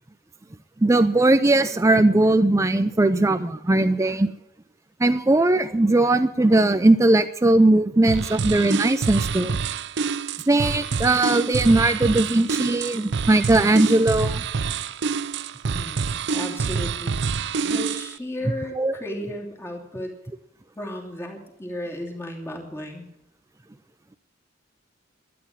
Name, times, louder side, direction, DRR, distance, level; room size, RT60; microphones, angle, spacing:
voice 1, 0.8-4.3 5.0-9.5 10.5-14.4 18.8-18.9, right 2 dB, 15° right, 10 dB, 0.4 m, -19 dB
sound 1, 8.1-18.2, right 5 dB, 60° right, 0.6 m, -27 dB
voice 2, 15.7-20.1 20.7-23.1, left 1 dB, 15° left, -1 dB, 2.9 m, -35 dB
13.0 x 9.5 x 9.4 m, 0.79 s
head